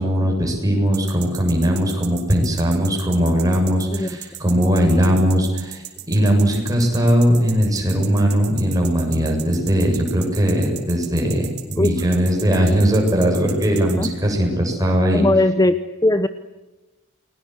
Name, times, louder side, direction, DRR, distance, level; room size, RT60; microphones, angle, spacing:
voice 1, 0.0-15.2, equal, 15° right, 1 dB, 7.3 m, -19 dB
sound 1, 0.9-14.1, right 14 dB, 50° right, 3.8 m, -36 dB
voice 2, 15.1-16.3, left 2 dB, 15° left, 11 dB, 0.8 m, -18 dB
29.5 x 21.5 x 8.0 m, 1.1 s
head